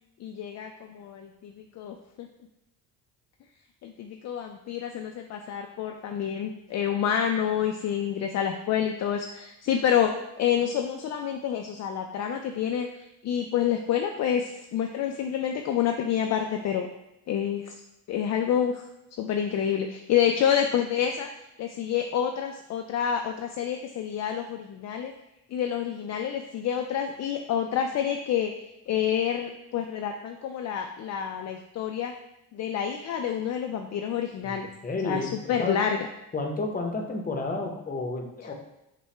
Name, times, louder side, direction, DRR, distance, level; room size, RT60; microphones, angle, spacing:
voice 1, 0.2-2.3 3.8-10.1 10.4-12.9 13.2-16.9 17.3-17.7 18.1-18.8 19.2-21.3 21.6-25.1 25.5-28.5 28.9-32.1 32.5-34.7 35.0-36.1 38.4-38.5, left 9 dB, 50° left, 4 dB, 0.4 m, -28 dB
voice 2, 34.4-35.8 36.3-38.5, left 3 dB, 25° left, 2 dB, 0.8 m, -31 dB
5.6 x 2.2 x 3.3 m, 0.90 s
cardioid pair, 90°, 36 cm